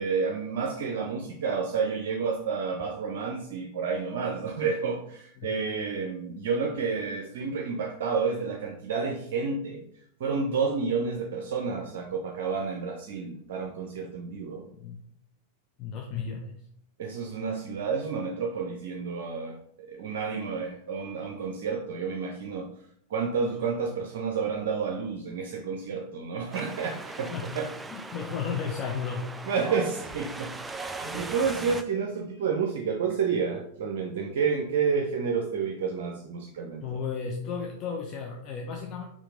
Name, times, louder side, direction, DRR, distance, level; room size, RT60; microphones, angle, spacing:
voice 1, 0.0-9.8 10.2-14.7 17.0-22.7 23.1-27.7 29.4-36.8, right 5 dB, 55° right, 2 dB, 0.6 m, -30 dB
voice 2, 14.7-15.0 15.8-16.6 27.3-27.5 27.9-29.3 36.8-39.1, left 6 dB, 35° left, 1 dB, 0.6 m, -34 dB
Wind, 26.5-31.8, right 3 dB, 10° right, 0.3 m, -39 dB
4.4 x 2.9 x 3.8 m, 0.71 s
figure-of-eight pair, 90°, 0 cm